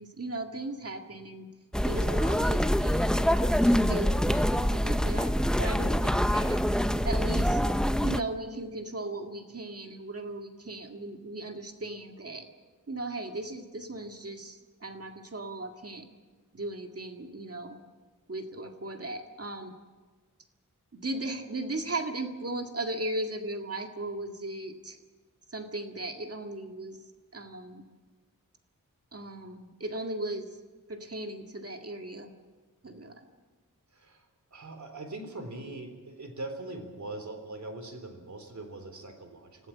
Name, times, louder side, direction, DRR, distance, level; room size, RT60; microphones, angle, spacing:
voice 1, 0.0-1.5 1.8-3.2 3.5-6.6 7.0-7.6 8.0-12.5 12.9-16.1 16.5-17.8 18.3-19.7 20.9-25.0 25.5-27.0 27.3-27.8 29.1-30.5 30.9-32.3 32.8-33.2, right 2 dB, 45° right, 4 dB, 2.0 m, -37 dB
sound 1, 1.7-8.2, equal, ahead, 0.6 m, -25 dB
voice 2, 1.9-2.3 2.5-2.7 33.9-39.7, right 2 dB, 60° right, 6 dB, 3.7 m, -42 dB
26.0 x 16.5 x 7.3 m, 1.3 s
wide cardioid pair, 85°, 32 cm